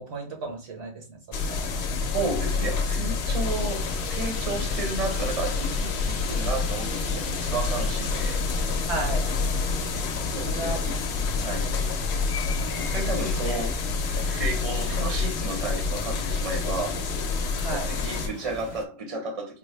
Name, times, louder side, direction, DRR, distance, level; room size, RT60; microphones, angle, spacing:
voice 1, 0.0-1.6 8.9-9.3 10.5-10.8 11.6-11.7 17.6-17.9, right 3 dB, 85° right, 1.3 m, -34 dB
sound 1, 1.3-18.3, left 4 dB, 80° left, 0.8 m, -28 dB
voice 2, 2.1-8.4 10.3-11.0 11.4-11.7 12.8-17.0 17.7-19.6, right 3 dB, 35° right, 0.8 m, -33 dB
sound 2, 3.4-18.8, left 4 dB, 50° left, 0.6 m, -39 dB
3.7 x 2.0 x 3.2 m
omnidirectional pair, 1.1 m